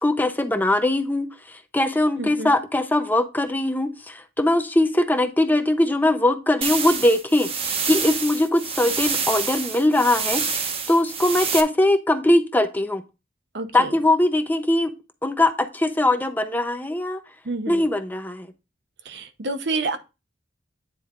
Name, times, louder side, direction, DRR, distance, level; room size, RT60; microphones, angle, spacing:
voice 1, 0.0-10.4 10.9-13.0 13.7-14.9 15.2-17.2 17.7-18.5, left 1 dB, 10° left, 0.5 m, -21 dB
voice 2, 2.2-2.5 13.5-13.9 17.4-17.8 19.1-20.0, right 3 dB, 60° right, 0.8 m, -28 dB
sound 1, 6.6-11.6, right 5 dB, 30° right, 0.8 m, -27 dB
9.3 x 4.1 x 3.7 m
head